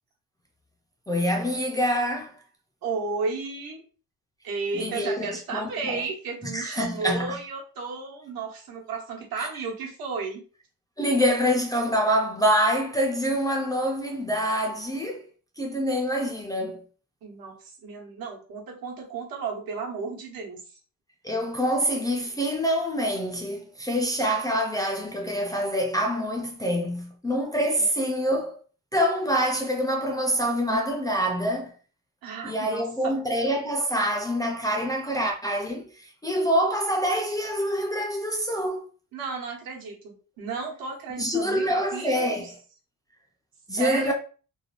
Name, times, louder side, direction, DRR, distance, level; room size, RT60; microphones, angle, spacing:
voice 1, 1.1-2.3 4.7-6.0 6.5-7.4 9.4-9.5 11.0-15.2 15.6-16.8 21.2-28.6 28.9-31.7 32.4-38.9 41.2-42.5 43.7-44.1, equal, 10° left, 0.3 m, -26 dB
voice 2, 2.8-3.8 4.4-10.4 17.2-20.6 27.8-27.9 32.2-33.2 39.1-42.5 43.8-44.1, right 4 dB, 75° right, 1.0 m, -33 dB
3.2 x 2.2 x 2.4 m
cardioid pair, 145°, 35 cm